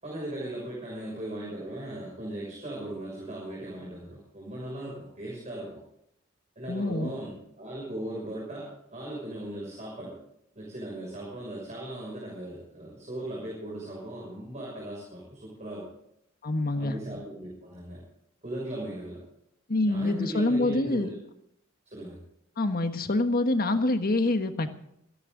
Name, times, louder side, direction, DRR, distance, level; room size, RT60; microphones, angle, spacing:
voice 1, 0.0-5.8 6.5-10.1 10.5-15.9 16.8-18.0 18.4-19.2 19.8-21.2 21.9-22.2, right 1 dB, 35° right, -4 dB, 6.6 m, -38 dB
voice 2, 6.7-7.1 16.4-17.0 19.7-21.1 22.6-24.7, left 2 dB, 45° left, 8 dB, 1.4 m, -26 dB
27.5 x 11.0 x 3.9 m, 0.74 s
head